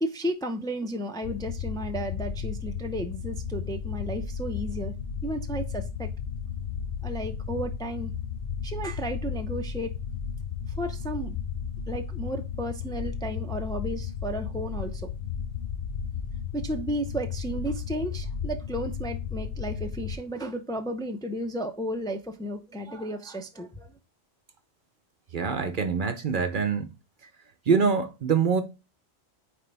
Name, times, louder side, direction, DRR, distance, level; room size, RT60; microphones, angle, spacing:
voice 1, 0.0-4.9 5.2-6.1 7.0-8.1 8.6-9.9 10.8-11.4 11.9-15.1 16.5-23.9, right 1 dB, 5° left, 0.5 m, -33 dB
sound 1, 1.2-20.2, left 7 dB, 75° left, 0.9 m, -34 dB
voice 2, 25.3-26.9 27.7-28.6, right 5 dB, 55° right, 0.8 m, -24 dB
9.1 x 3.4 x 3.3 m
omnidirectional pair, 1.1 m